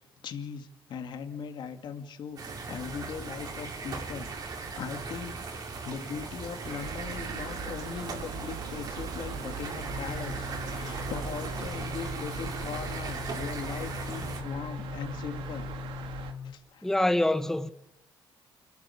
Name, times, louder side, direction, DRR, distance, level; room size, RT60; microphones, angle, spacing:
voice 1, 0.2-2.4 2.7-5.4 5.8-15.7 16.4-16.9, left 6 dB, 60° left, 2.3 m, -39 dB
sound 1, 2.4-14.4, right 4 dB, 50° right, 4.4 m, -39 dB
sound 2, 6.6-16.3, right 7 dB, 85° right, 2.4 m, -41 dB
sound 3, 9.8-16.5, left 6 dB, 40° left, 1.5 m, -40 dB
voice 2, 16.8-17.7, left 1 dB, 5° left, 1.1 m, -25 dB
29.0 x 12.5 x 8.6 m
cardioid pair, 120°, 9 cm